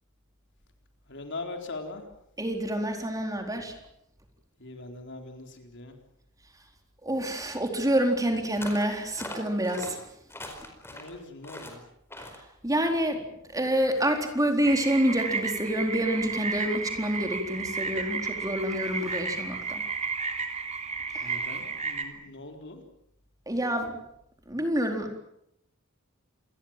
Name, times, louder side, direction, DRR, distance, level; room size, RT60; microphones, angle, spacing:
voice 1, 1.1-2.1 4.6-6.0 10.9-11.8 21.2-22.8, left 3 dB, 55° left, 4 dB, 4.2 m, -41 dB
voice 2, 2.4-3.8 7.0-10.0 12.6-13.2 13.5-19.8 21.1-21.3 23.5-24.0 24.5-25.2, right 1 dB, 15° right, 3 dB, 4.1 m, -27 dB
sound 1, 8.6-8.9 9.2-9.9 10.3-11.1 11.4-11.8 12.1-12.4, left 1 dB, 10° left, 4.8 m, -40 dB
sound 2, 14.6-22.0, right 4 dB, 30° right, 3.2 m, -33 dB
28.0 x 21.0 x 7.5 m, 0.77 s
head